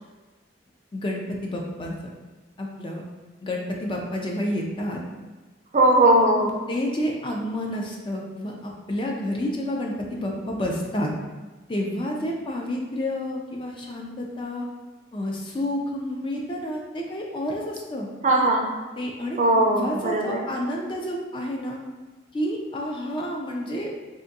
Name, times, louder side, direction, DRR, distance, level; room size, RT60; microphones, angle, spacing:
voice 1, 0.9-1.9 2.6-3.0 3.4-5.0 6.7-11.1 11.7-14.7 15.1-18.1 19.0-21.8 22.3-23.9, left 1 dB, 25° left, 0 dB, 0.3 m, -29 dB
voice 2, 5.7-6.5 18.2-18.7 19.4-20.5, right 1 dB, 40° right, 0 dB, 0.4 m, -19 dB
3.6 x 2.5 x 2.6 m, 1.2 s
head